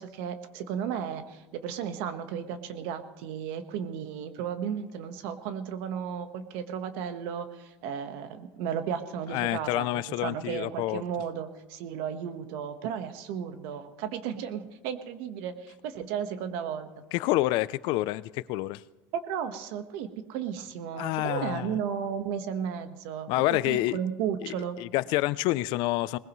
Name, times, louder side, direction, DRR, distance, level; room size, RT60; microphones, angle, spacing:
voice 1, 0.0-9.9 10.2-16.9 19.1-23.3 23.7-24.8, right 8 dB, 65° right, 8 dB, 1.4 m, -34 dB
voice 2, 9.3-11.0 17.1-18.8 20.9-21.8 23.3-24.0 24.4-26.2, left 17 dB, 55° left, 18 dB, 0.5 m, -28 dB
21.0 x 20.5 x 3.2 m, 1.1 s
cardioid pair, 165°, 10 cm